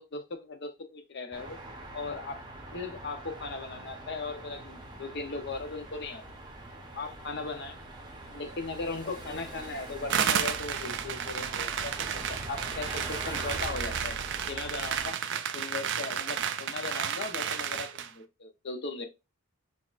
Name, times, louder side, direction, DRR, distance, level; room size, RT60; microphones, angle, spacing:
voice 1, 0.0-1.6 1.9-2.4 2.7-6.2 6.9-7.8 8.3-14.2 14.5-15.2 15.5-19.1, left 3 dB, 50° left, 0.7 m, -38 dB
sound 1, 1.3-15.1, right 2 dB, 20° right, 0.7 m, -42 dB
sound 2, 10.1-18.1, right 8 dB, 55° right, 0.4 m, -32 dB
5.7 x 2.5 x 2.4 m
head